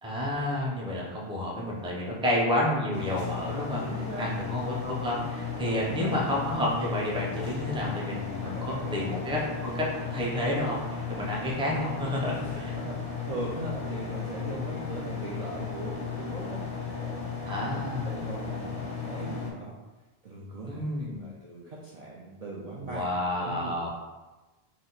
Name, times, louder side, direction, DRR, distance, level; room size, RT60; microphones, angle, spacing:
voice 1, 0.0-3.8 4.2-12.7 14.5-14.7 17.5-18.1 20.7-21.3 22.8-23.9, left 1 dB, 5° right, -4 dB, 0.6 m, -30 dB
sound 1, 2.9-19.5, left 6 dB, 40° left, 0.6 m, -35 dB
voice 2, 3.8-4.3 5.6-6.1 8.4-9.0 12.7-16.6 16.9-19.7 20.2-23.1 23.4-23.7, right 2 dB, 50° right, -5 dB, 0.5 m, -39 dB
4.4 x 2.0 x 3.9 m, 1.1 s
omnidirectional pair, 1.1 m